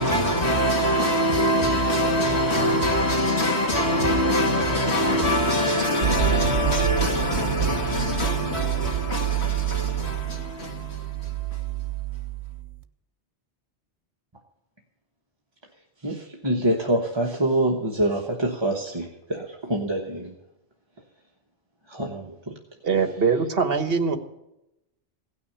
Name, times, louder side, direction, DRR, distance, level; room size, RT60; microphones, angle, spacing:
voice 1, 0.0-11.6, equal, 65° left, 2.5 m, -24 dB
sound 1, 6.0-12.8, right 12 dB, 85° right, 1.1 m, -28 dB
voice 2, 16.0-20.3 21.9-22.6, right 1 dB, 25° right, 1.2 m, -26 dB
voice 3, 22.8-24.2, right 5 dB, 60° right, 1.4 m, -22 dB
17.0 x 6.3 x 9.9 m
omnidirectional pair, 1.2 m